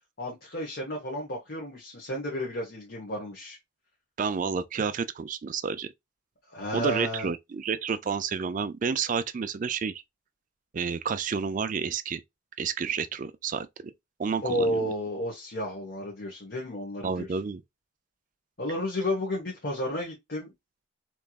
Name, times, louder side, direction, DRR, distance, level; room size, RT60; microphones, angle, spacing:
voice 1, 0.2-3.6 6.5-7.3 14.4-17.3 18.6-20.5, equal, 55° left, 1.4 m, -32 dB
voice 2, 4.2-5.9 6.7-10.0 10.7-12.2 12.6-13.9 14.2-14.9 17.0-17.6, right 6 dB, 40° right, 0.3 m, -30 dB
3.5 x 3.0 x 2.3 m
head